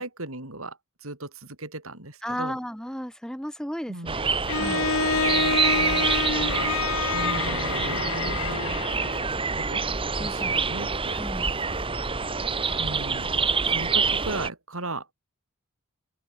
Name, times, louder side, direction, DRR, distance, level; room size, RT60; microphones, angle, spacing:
voice 1, 0.0-2.6 3.9-4.3 5.3-6.9 7.1-8.1 9.5-9.8 10.2-11.2 12.8-15.1, right 2 dB, 65° right, 6.4 m, -37 dB
voice 2, 2.2-4.2 4.6-4.9 10.2-10.6 11.1-11.5, equal, 5° left, 3.7 m, -34 dB
sound 1, 4.1-14.5, right 5 dB, 25° right, 1.6 m, -27 dB
Bowed string instrument, 4.5-9.3, left 4 dB, 65° left, 4.3 m, -27 dB
open air
head